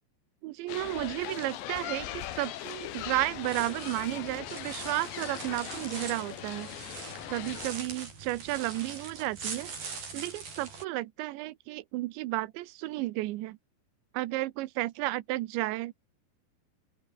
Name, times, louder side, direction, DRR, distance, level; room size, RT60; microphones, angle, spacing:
voice 1, 0.4-6.7 7.3-9.7 10.1-13.6 14.1-15.9, right 18 dB, 90° right, 3.2 m, -33 dB
sound 1, 0.7-7.7, left 12 dB, 80° left, 4.0 m, -40 dB
sound 2, 3.4-10.8, right 5 dB, 55° right, 8.2 m, -42 dB
open air
omnidirectional pair, 5.1 m